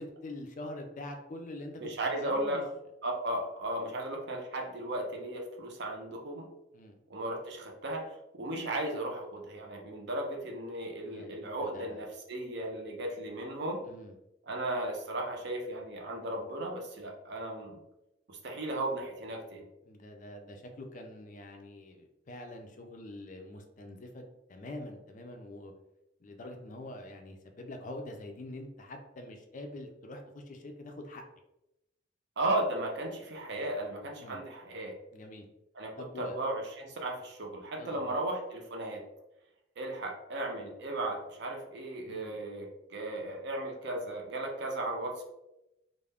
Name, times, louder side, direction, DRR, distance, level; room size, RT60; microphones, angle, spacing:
voice 1, 0.0-1.9 2.2-2.6 6.7-6.9 11.0-12.0 13.9-14.2 19.8-25.7 26.2-31.2 34.2-34.4 35.1-35.5 36.0-36.4 37.8-38.2 42.1-42.4, left 1 dB, 40° left, 4 dB, 0.4 m, -45 dB
voice 2, 1.8-2.6 3.0-6.5 7.1-13.8 14.5-17.8 18.3-19.7 32.4-35.0 35.8-39.0 39.8-45.2, right 1 dB, 55° right, 1 dB, 0.5 m, -35 dB
2.4 x 2.1 x 3.3 m, 0.91 s
head